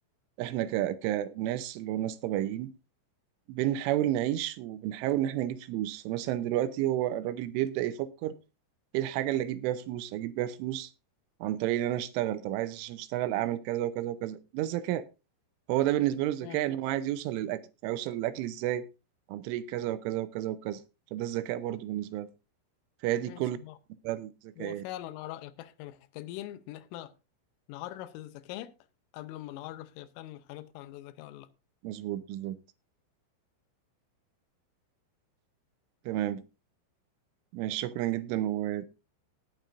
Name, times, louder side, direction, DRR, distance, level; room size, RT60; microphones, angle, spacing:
voice 1, 0.4-2.7 3.5-8.3 8.9-10.9 11.4-15.0 15.7-18.8 19.3-20.8 21.1-22.3 23.0-23.6 24.0-24.8 31.8-32.6 36.1-36.4 37.5-38.9, right 13 dB, 80° right, 3.2 m, -31 dB
voice 2, 23.3-23.8 24.6-27.1 27.7-28.7 29.1-31.5, left 14 dB, 85° left, 3.3 m, -42 dB
19.0 x 8.9 x 2.6 m
omnidirectional pair, 5.7 m